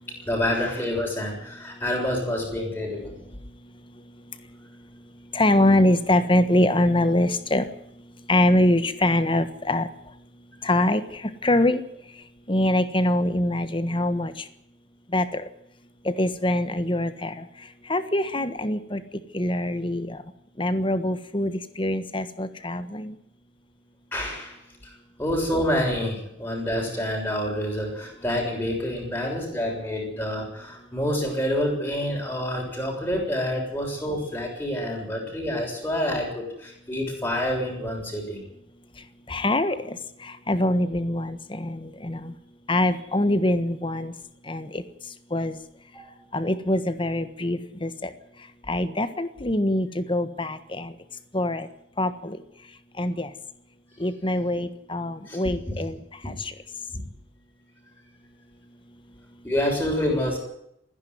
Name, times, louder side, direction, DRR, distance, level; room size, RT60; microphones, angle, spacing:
voice 1, 0.3-3.2 24.1-24.6 25.2-38.5 45.9-46.1 55.3-55.7 56.2-56.3 59.4-60.4, left 1 dB, 10° left, -1 dB, 6.7 m, -27 dB
voice 2, 5.3-7.7 8.3-9.9 10.6-11.0 11.4-11.8 12.5-14.3 15.1-15.4 16.0-17.4 17.9-19.0 19.3-20.2 20.6-23.1 39.3-40.0 40.5-42.3 42.7-44.1 44.5-44.8 45.3-45.6 46.3-48.1 48.7-50.9 51.3-51.7 52.0-52.4 53.0-53.3 54.0-56.0 56.2-56.3, left 1 dB, 25° left, 11 dB, 1.4 m, -24 dB
26.0 x 11.0 x 9.6 m, 0.77 s
head